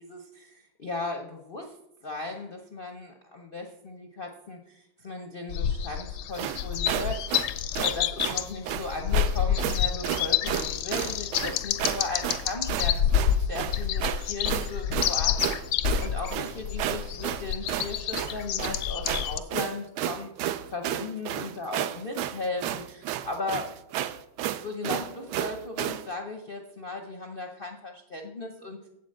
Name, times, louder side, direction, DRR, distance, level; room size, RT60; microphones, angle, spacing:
voice 1, 0.1-1.8 2.0-7.5 7.8-15.7 16.0-23.7 24.5-28.8, left 3 dB, 60° left, 3 dB, 0.5 m, -37 dB
sound 1, 5.5-19.4, left 10 dB, 75° left, 0.9 m, -28 dB
sound 2, 6.3-26.1, right 12 dB, 75° right, 1.0 m, -32 dB
7.8 x 6.0 x 7.6 m, 0.80 s
omnidirectional pair, 2.2 m